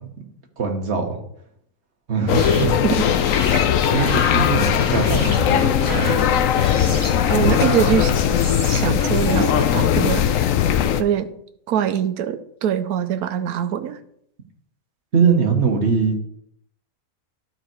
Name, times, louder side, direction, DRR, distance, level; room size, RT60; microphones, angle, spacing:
voice 1, 0.6-1.2 2.1-2.7 3.9-6.1 7.4-7.7 15.1-16.1, right 5 dB, 50° right, 3 dB, 1.6 m, -21 dB
sound 1, 2.3-11.0, left 9 dB, 70° left, 1.0 m, -19 dB
sound 2, 2.3-9.8, left 1 dB, 15° left, 1.2 m, -32 dB
voice 2, 7.3-8.1 8.6-10.3 11.0-11.3 11.7-14.0, right 9 dB, 90° right, 10 dB, 1.2 m, -23 dB
12.0 x 4.6 x 4.6 m, 0.71 s
omnidirectional pair, 1.5 m